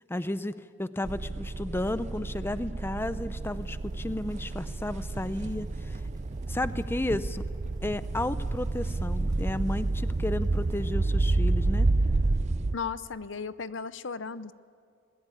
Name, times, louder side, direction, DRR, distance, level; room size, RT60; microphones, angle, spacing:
voice 1, 0.1-6.0 6.5-7.4 7.8-11.9, left 1 dB, 10° left, 13 dB, 0.6 m, -33 dB
sound 1, 1.0-12.7, right 2 dB, 35° right, 0.5 m, -29 dB
sound 2, 3.4-11.0, equal, 20° right, 1.9 m, -53 dB
voice 2, 12.7-14.5, left 5 dB, 75° left, 14 dB, 0.8 m, -35 dB
25.0 x 20.0 x 8.4 m, 2.4 s
head